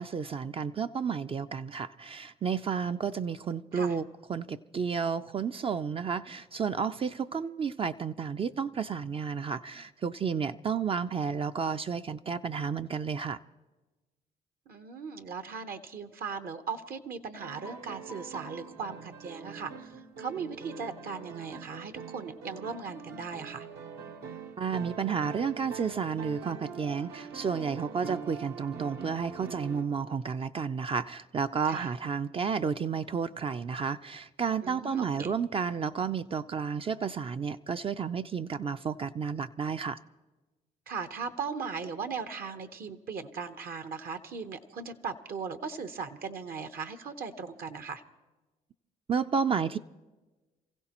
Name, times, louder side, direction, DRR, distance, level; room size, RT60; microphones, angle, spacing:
voice 1, 0.0-4.0 4.3-13.4 24.6-40.0 49.1-49.8, right 6 dB, 35° right, 0.4 m, -31 dB
voice 2, 14.7-23.7 31.6-31.9 34.6-35.3 40.9-48.0, right 5 dB, 60° right, 0.9 m, -38 dB
sound 1, 17.3-29.8, right 6 dB, 75° right, 1.1 m, -44 dB
27.5 x 15.5 x 3.0 m
supercardioid pair, 65°, 17 cm